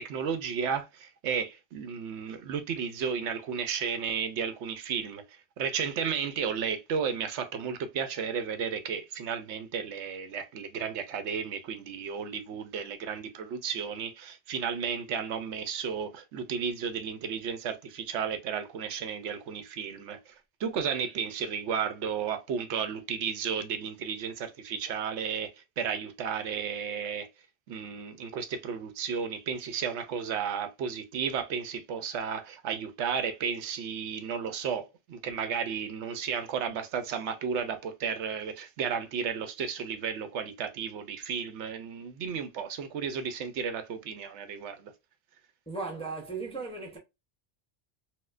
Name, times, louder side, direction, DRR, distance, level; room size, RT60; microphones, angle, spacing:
voice 1, 0.0-5.2 5.6-20.3 20.6-27.3 27.7-44.9, right 6 dB, 80° right, 0.9 m, -33 dB
voice 2, 45.7-47.0, right 4 dB, 5° left, 0.5 m, -36 dB
4.3 x 2.1 x 2.4 m
omnidirectional pair, 1.2 m